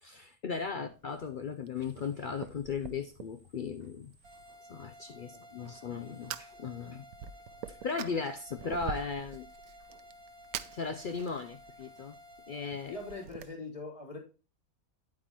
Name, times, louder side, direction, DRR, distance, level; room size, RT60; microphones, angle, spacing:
voice 1, 0.0-4.1 4.7-7.0 7.7-9.5 10.7-12.2 12.5-12.9, left 5 dB, 70° left, 9 dB, 0.4 m, -37 dB
Fire, 0.5-13.5, right 9 dB, 90° right, 1.1 m, -47 dB
sound 1, 4.2-13.2, left 1 dB, 40° right, 1.4 m, -54 dB
voice 2, 5.3-5.8 7.8-7.9 12.9-14.2, left 3 dB, 20° left, -1 dB, 3.4 m, -43 dB
9.7 x 8.5 x 3.0 m, 0.33 s
omnidirectional pair, 1.5 m